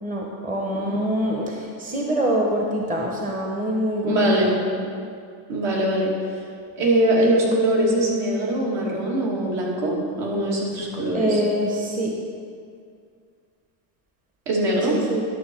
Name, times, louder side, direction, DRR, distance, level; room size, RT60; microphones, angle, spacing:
voice 1, 0.0-4.5 11.1-12.1 14.9-15.2, equal, 15° right, 0 dB, 1.0 m, -25 dB
voice 2, 4.0-4.6 5.5-6.1 6.8-11.4 14.5-15.0, right 1 dB, 60° right, -3 dB, 2.7 m, -22 dB
11.0 x 6.5 x 4.6 m, 2.2 s
cardioid pair, 120°, 49 cm